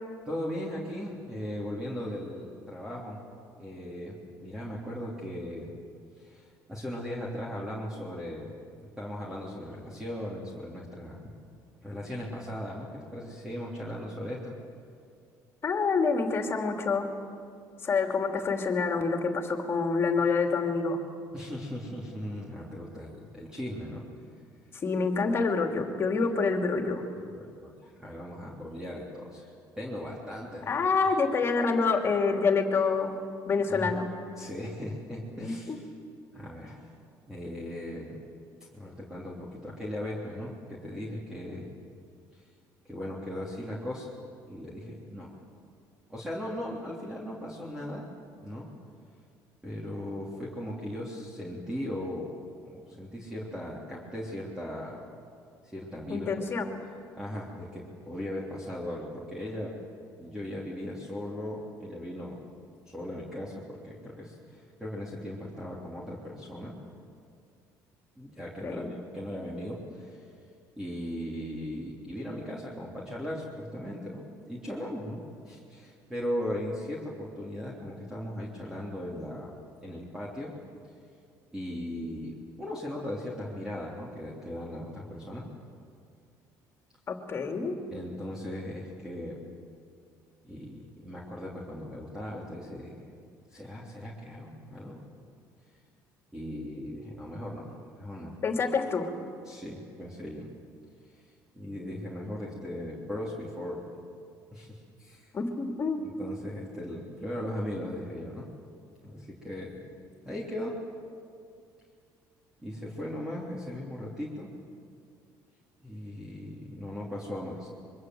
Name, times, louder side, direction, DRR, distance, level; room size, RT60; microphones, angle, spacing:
voice 1, 0.3-3.2 3.6-5.7 6.2-8.5 9.0-11.2 11.8-14.5 21.3-24.1 27.3-30.7 33.7-33.9 34.4-35.9 36.3-36.9 37.3-38.2 38.7-41.7 42.3-42.5 42.8-44.1 44.5-45.3 46.1-48.0 48.4-48.7 49.6-52.3 52.6-55.0 55.6-56.5 57.2-59.7 60.2-62.4 62.9-66.8 68.2-70.3 70.8-79.5 79.8-80.6 81.5-85.5 87.9-89.4 90.4-93.0 93.5-95.0 96.3-98.4 99.4-100.5 101.1-101.2 101.5-103.8 104.5-105.3 106.2-108.5 109.0-109.8 110.2-110.8 112.6-114.5 115.8-117.7, left 1 dB, 10° right, -4 dB, 3.4 m, -38 dB
voice 2, 15.6-17.1 17.8-21.0 24.8-27.0 30.7-33.1 33.5-34.1 35.4-35.8 56.1-56.7 68.6-68.9 87.1-87.8 98.4-99.1 105.3-106.0, left 4 dB, 35° left, 3 dB, 2.9 m, -27 dB
25.0 x 23.5 x 7.9 m, 2.3 s
cardioid pair, 130°, 7 cm